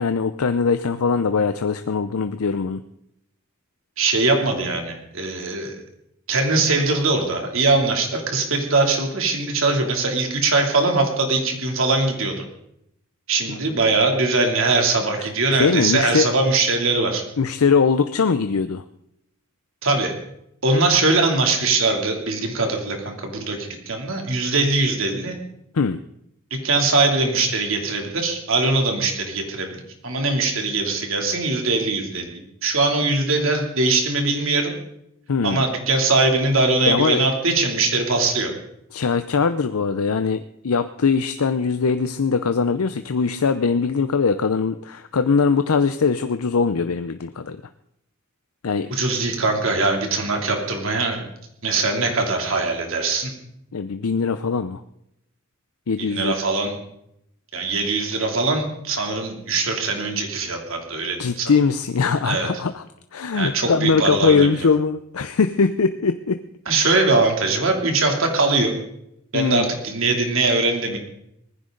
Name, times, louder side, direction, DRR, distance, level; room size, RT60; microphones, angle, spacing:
voice 1, 0.0-2.8 15.2-15.3 15.6-16.3 17.4-18.8 25.7-26.0 35.3-35.7 36.9-37.2 38.9-47.6 48.6-49.0 53.7-54.8 55.9-56.3 61.2-62.8 63.1-66.4 66.8-66.9 69.3-69.7, left 5 dB, 85° left, 10 dB, 0.6 m, -21 dB
voice 2, 4.0-5.8 6.3-12.4 13.3-17.2 19.8-20.1 20.6-25.4 26.5-34.7 35.4-38.5 48.9-51.3 51.6-53.3 56.0-56.7 57.5-61.5 62.2-62.5 63.3-64.5 66.7-68.7 69.3-71.0, right 3 dB, 65° right, 2 dB, 2.9 m, -21 dB
19.5 x 15.0 x 3.9 m, 0.78 s
head